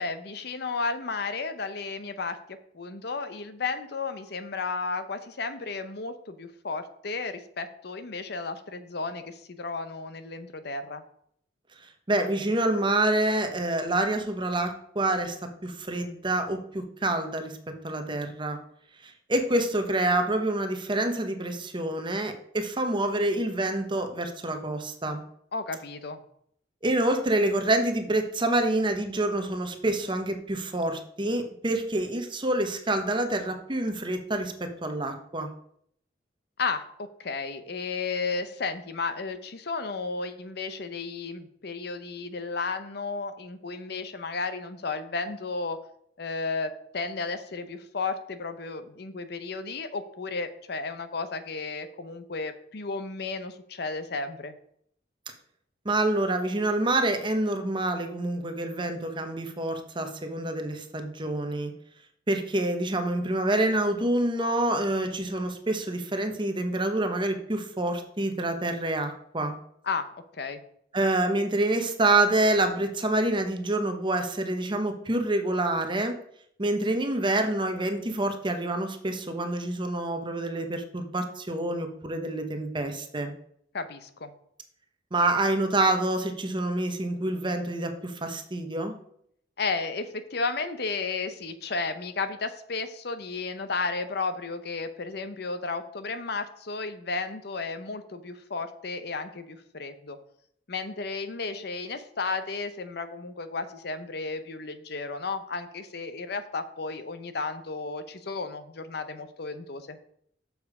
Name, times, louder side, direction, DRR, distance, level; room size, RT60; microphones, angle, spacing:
voice 1, 0.0-11.0 25.5-26.2 36.6-45.8 46.2-54.6 69.8-70.6 83.7-84.3 89.6-100.2 100.7-110.0, left 4 dB, 65° left, 10 dB, 0.7 m, -33 dB
voice 2, 12.1-18.6 19.0-25.2 26.8-35.5 55.8-61.7 62.3-69.5 70.9-76.2 76.6-83.3 85.1-88.9, right 2 dB, 25° right, 6 dB, 1.0 m, -27 dB
7.0 x 6.6 x 4.8 m, 0.67 s
head